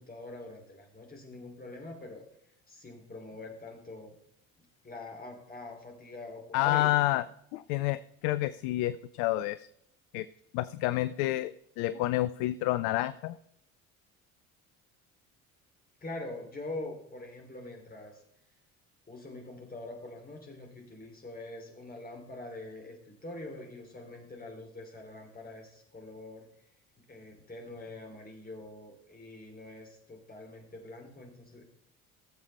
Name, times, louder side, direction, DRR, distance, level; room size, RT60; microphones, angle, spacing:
voice 1, 0.0-2.2 2.7-4.2 4.8-6.9 16.0-18.2 19.1-26.5 27.1-31.6, left 2 dB, 20° left, 2 dB, 3.0 m, -44 dB
voice 2, 6.5-7.2 7.5-9.7 10.1-10.3 10.5-11.5 11.8-13.4, left 16 dB, 50° left, 16 dB, 0.4 m, -29 dB
17.0 x 7.3 x 3.4 m, 0.74 s
figure-of-eight pair, 55°, 43 cm